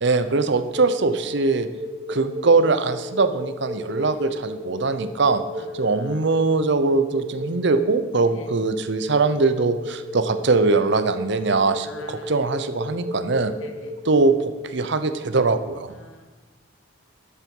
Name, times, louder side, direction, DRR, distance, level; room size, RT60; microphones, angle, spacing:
voice 1, 0.0-1.7 2.1-5.4 5.7-13.5 14.0-15.9, right 3 dB, 60° right, 10 dB, 0.7 m, -21 dB
sound 1, 0.7-14.5, equal, 15° right, 1.9 m, -33 dB
voice 2, 3.9-4.3 5.6-6.2 8.3-8.6 11.8-12.4 13.6-13.9 15.9-16.3, left 2 dB, 90° left, 6 dB, 1.2 m, -45 dB
11.5 x 7.5 x 5.4 m, 1.3 s
head